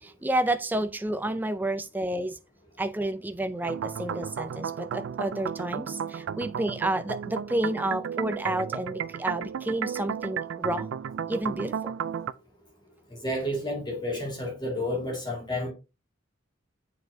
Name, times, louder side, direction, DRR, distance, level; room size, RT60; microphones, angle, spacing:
voice 1, 0.0-2.4 2.8-10.9 11.3-11.9, right 1 dB, 10° right, 0.4 m, -30 dB
sound 1, 3.6-12.3, right 7 dB, 75° right, 0.4 m, -33 dB
voice 2, 13.1-15.7, left 1 dB, 25° left, 2.2 m, -31 dB
7.8 x 4.8 x 2.7 m
head